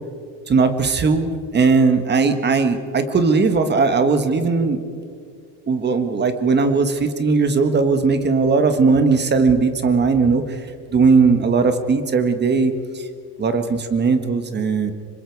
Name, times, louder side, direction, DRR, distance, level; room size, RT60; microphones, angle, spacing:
voice 1, 0.5-4.8 5.7-10.6 10.9-13.1 13.4-14.9, right 4 dB, 25° right, 8 dB, 1.5 m, -18 dB
26.5 x 24.5 x 4.7 m, 2.3 s
cardioid pair, 160°, 42 cm